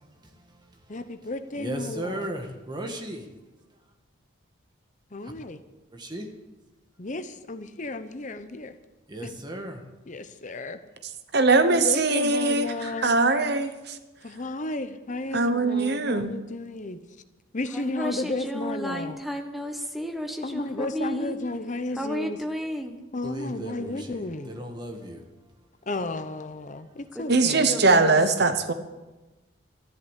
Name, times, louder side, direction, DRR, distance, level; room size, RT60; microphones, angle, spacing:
voice 1, 0.1-1.0 1.5-3.3 5.2-5.3 5.9-6.3 9.1-9.8 23.2-25.3 26.7-27.0, right 1 dB, 20° right, 1.7 m, -36 dB
voice 2, 0.9-2.3 5.1-5.6 7.0-8.7 9.2-9.3 10.1-10.8 11.5-13.2 14.2-17.0 17.5-19.2 20.4-22.4 23.1-24.5 25.9-27.9, left 2 dB, 35° left, 0.8 m, -33 dB
voice 3, 11.3-12.7 13.0-14.0 15.3-16.3 27.3-28.7, right 3 dB, 50° right, 1.0 m, -21 dB
voice 4, 17.7-21.3 22.0-23.0 27.1-28.2, equal, ahead, 1.3 m, -33 dB
13.5 x 11.0 x 8.2 m
head